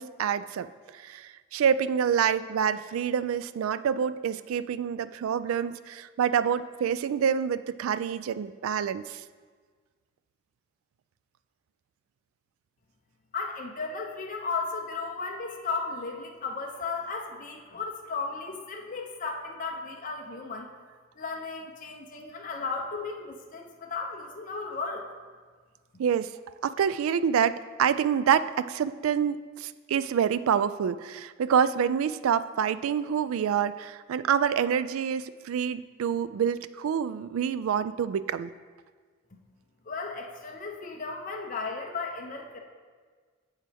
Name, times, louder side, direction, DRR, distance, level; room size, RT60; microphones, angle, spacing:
voice 1, 0.0-9.2 26.0-26.3 26.6-38.5, right 8 dB, 80° right, 15 dB, 0.3 m, -27 dB
voice 2, 13.3-20.7 21.2-25.0 25.9-26.0 39.9-42.6, left 4 dB, 40° left, 1 dB, 0.7 m, -35 dB
8.8 x 7.3 x 3.4 m, 1.5 s
head